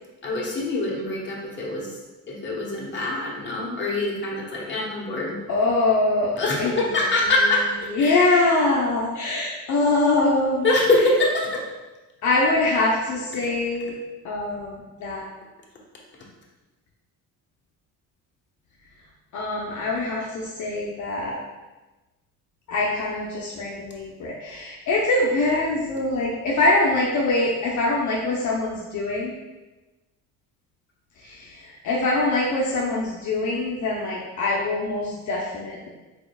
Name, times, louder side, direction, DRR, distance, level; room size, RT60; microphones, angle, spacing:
voice 1, 0.2-1.9 2.3-5.4 6.4-8.1 10.6-11.7, left 2 dB, 35° left, -4 dB, 1.2 m, -24 dB
voice 2, 5.5-6.9 7.2-7.3 7.9-10.7 12.2-13.9 14.2-15.2 19.3-21.4 22.7-29.3 31.2-35.9, left 2 dB, 55° left, -4 dB, 0.8 m, -23 dB
4.9 x 4.3 x 2.3 m, 1.1 s
cardioid pair, 105°, 34 cm